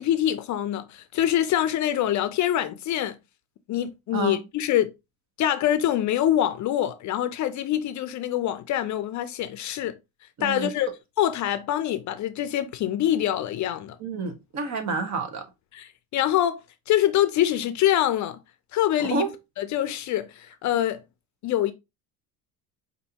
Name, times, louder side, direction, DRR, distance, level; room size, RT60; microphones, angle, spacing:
voice 1, 0.0-3.1 3.7-4.9 5.4-9.9 10.4-10.9 11.2-14.0 15.7-16.6 16.9-18.4 18.7-19.3 19.6-21.0 21.4-21.7, left 12 dB, 45° left, 0.5 m, -25 dB
voice 2, 10.4-10.7 14.0-15.4 19.0-19.3, right 4 dB, 45° right, 1.2 m, -29 dB
5.3 x 2.7 x 2.8 m
supercardioid pair, 105°, 40 cm